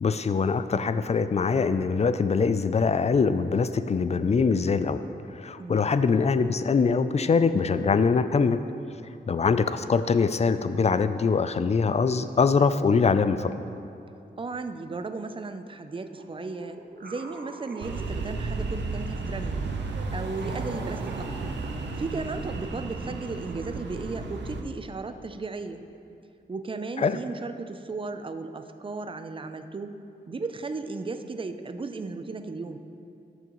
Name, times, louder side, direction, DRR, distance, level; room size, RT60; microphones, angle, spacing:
voice 1, 0.0-5.0 5.3-8.6 9.3-13.6 27.0-27.2, left 5 dB, 40° left, 11 dB, 0.3 m, -23 dB
voice 2, 5.5-6.0 14.4-19.6 20.1-21.5 22.0-25.9 26.5-29.9 30.3-32.8, right 3 dB, 30° right, 9 dB, 0.5 m, -35 dB
sound 1, 16.1-18.9 19.5-22.2, right 2 dB, 60° right, 1.0 m, -44 dB
sound 2, 17.8-24.6, right 3 dB, 85° right, 0.7 m, -33 dB
13.5 x 6.2 x 3.1 m, 2.6 s
wide cardioid pair, 80°, 18 cm